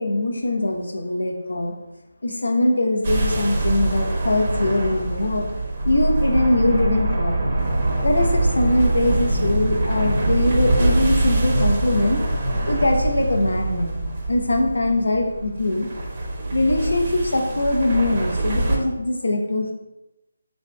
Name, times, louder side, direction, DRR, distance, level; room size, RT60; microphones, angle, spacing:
voice 1, 0.0-1.7 2.2-5.5 5.8-7.5 8.0-12.2 12.7-13.9 14.3-15.9 16.5-19.7, left 2 dB, 75° left, 2 dB, 0.8 m, -22 dB
sound 1, 3.0-18.8, right 2 dB, 35° right, 0.8 m, -23 dB
5.9 x 2.7 x 2.2 m, 0.95 s
figure-of-eight pair, 160°, 0 cm